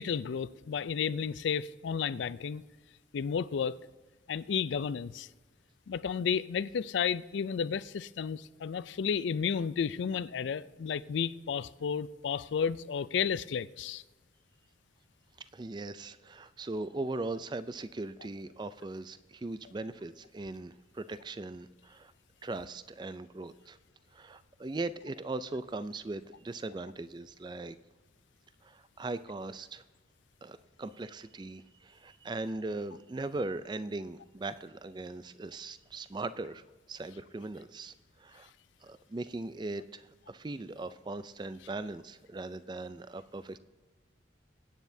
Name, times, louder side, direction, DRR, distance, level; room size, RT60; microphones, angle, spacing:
voice 1, 0.0-2.6 3.1-3.8 4.3-5.3 5.9-14.0, left 7 dB, 70° left, 0.4 m, -32 dB
voice 2, 15.5-22.1 22.4-23.8 24.1-27.8 28.6-29.8 30.4-38.5 38.8-43.6, right 2 dB, 25° right, 0.3 m, -39 dB
21.5 x 9.4 x 2.7 m
head